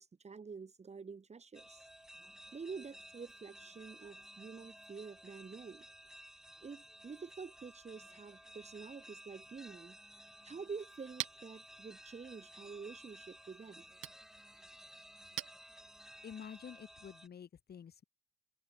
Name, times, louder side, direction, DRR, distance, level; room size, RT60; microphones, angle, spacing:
voice 1, 0.0-1.9 2.5-5.8 6.3-10.0 10.4-13.8, right 5 dB, 35° right, 3.1 m, -48 dB
sound 1, 1.5-17.3, equal, ahead, 5.2 m, -56 dB
Chink clink, 10.6-16.3, right 16 dB, 90° right, 1.1 m, -49 dB
voice 2, 16.2-18.0, left 8 dB, 55° left, 4.7 m, -49 dB
open air
cardioid pair, 90°, 20 cm